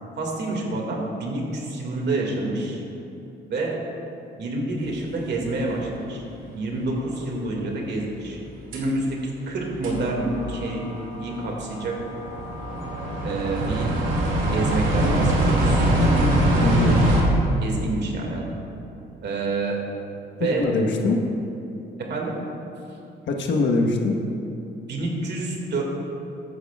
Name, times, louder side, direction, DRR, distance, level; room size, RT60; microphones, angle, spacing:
voice 1, 0.2-2.8 3.5-3.8 4.4-6.2 6.5-8.4 8.7-9.2 9.5-10.8 11.1-12.0 13.2-13.9 14.5-15.9 17.6-18.6 19.2-19.8 20.4-20.7 22.0-22.4 24.9-25.8, right 2 dB, 60° right, -1 dB, 2.1 m, -28 dB
sound 1, 6.0-6.1 8.7-8.8 9.5-9.6 9.8-17.2, right 1 dB, 80° right, 2.4 m, -23 dB
voice 2, 16.6-17.0 20.4-21.2 23.3-24.2, left 2 dB, 65° left, 2 dB, 1.3 m, -22 dB
14.5 x 11.5 x 2.4 m, 2.8 s
cardioid pair, 90°, 20 cm